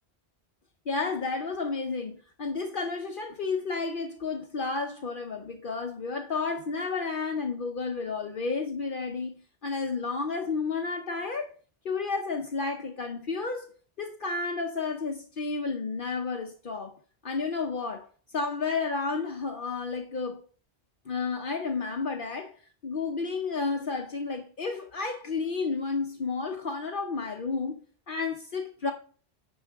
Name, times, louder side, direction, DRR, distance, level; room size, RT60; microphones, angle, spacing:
voice 1, 0.9-11.5 11.8-13.7 14.0-16.9 17.2-18.1 18.3-20.4 21.1-22.5 22.8-27.8 28.1-28.9, left 4 dB, 55° left, 0.9 m, -31 dB
9.6 x 3.7 x 4.6 m
omnidirectional pair, 1.1 m